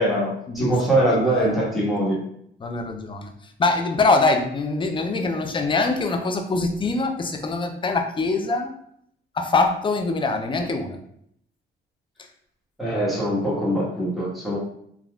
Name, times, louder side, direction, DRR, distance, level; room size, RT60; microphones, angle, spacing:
voice 1, 0.0-2.2 12.8-14.6, right 1 dB, ahead, -8 dB, 1.3 m, -22 dB
voice 2, 1.0-1.6 2.6-3.3 3.6-8.7 9.3-11.0, left 3 dB, 25° left, 5 dB, 0.4 m, -23 dB
3.4 x 2.4 x 2.3 m, 0.71 s
cardioid pair, 90°, 20 cm